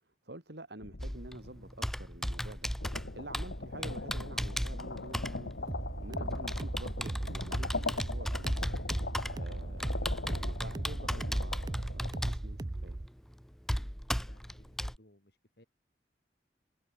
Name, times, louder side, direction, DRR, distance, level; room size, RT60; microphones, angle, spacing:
voice 1, 0.2-8.9 9.3-13.0, right 1 dB, 70° right, 4.8 m, -49 dB
cookiecrack earthquake, 0.8-2.0 2.4-12.3, left 3 dB, 80° left, 1.4 m, -41 dB
Computer keyboard, 1.0-15.0, equal, ahead, 0.8 m, -37 dB
sound 1, 5.7-13.1, right 2 dB, 20° right, 0.4 m, -38 dB
voice 2, 13.7-15.7, left 1 dB, 60° left, 5.7 m, -62 dB
head